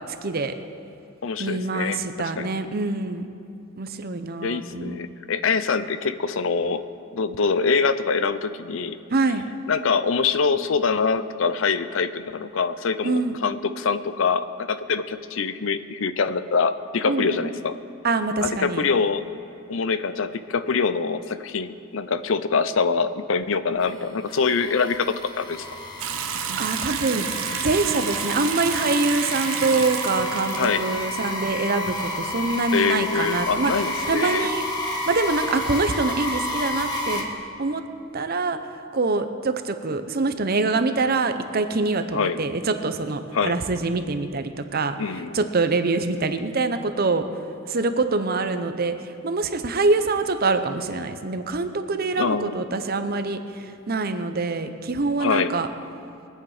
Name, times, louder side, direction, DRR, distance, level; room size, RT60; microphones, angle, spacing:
voice 1, 0.1-0.5 1.4-3.3 3.8-5.0 9.1-9.5 13.0-13.4 17.1-17.5 18.0-18.8 26.6-27.3 27.6-33.7 34.1-34.7 35.1-37.3 37.6-37.8 38.1-38.6 38.9-44.9 45.3-47.2 47.7-55.7, right 3 dB, 45° right, 9 dB, 0.8 m, -25 dB
voice 2, 1.2-2.5 4.4-6.8 7.1-9.0 9.7-17.8 18.4-19.2 19.7-25.6 30.5-30.8 32.7-34.5 42.1-42.4 43.3-43.6 45.0-45.5 52.2-52.6 55.2-55.5, left 5 dB, 65° left, 12 dB, 0.6 m, -24 dB
sound 1, 23.8-37.2, left 1 dB, 20° left, 1.6 m, -31 dB
Water tap faucet / Sink (filling or washing) / Bathtub (filling or washing), 26.0-31.7, right 10 dB, 85° right, 0.7 m, -31 dB
23.0 x 8.7 x 4.9 m, 2.5 s
head